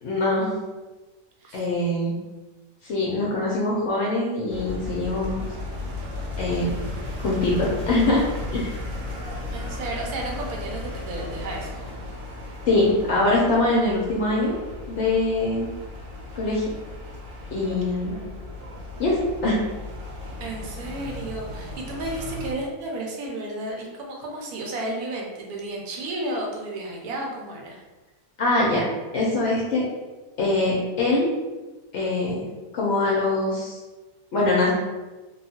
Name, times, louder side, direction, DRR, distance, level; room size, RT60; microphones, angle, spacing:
voice 1, 0.0-0.5 1.5-2.1 2.8-5.4 6.4-6.7 7.2-8.2 8.5-8.7 12.7-14.6 14.9-15.7 16.3-16.6 17.5-18.1 19.0-19.6 28.4-28.9 29.1-29.8 30.4-31.3 31.9-32.4 32.7-33.8 34.3-34.7, left 2 dB, 65° left, -5 dB, 0.7 m, -23 dB
sound 1, 4.5-22.5, left 2 dB, 65° right, 0.9 m, -35 dB
voice 2, 9.5-11.7 20.4-27.8, right 2 dB, 80° right, 0 dB, 1.1 m, -32 dB
2.8 x 2.3 x 2.7 m, 1.2 s
omnidirectional pair, 1.6 m